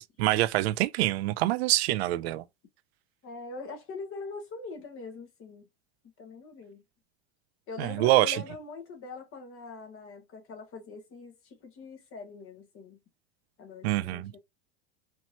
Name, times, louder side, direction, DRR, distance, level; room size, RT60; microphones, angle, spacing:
voice 1, 0.0-2.4 7.8-8.4 13.8-14.3, right 17 dB, 75° right, 0.5 m, -25 dB
voice 2, 3.2-5.6 6.2-6.8 7.7-13.0 13.6-14.4, left 4 dB, 40° left, 1.7 m, -42 dB
4.3 x 3.0 x 2.9 m
hypercardioid pair, 105°, 32 cm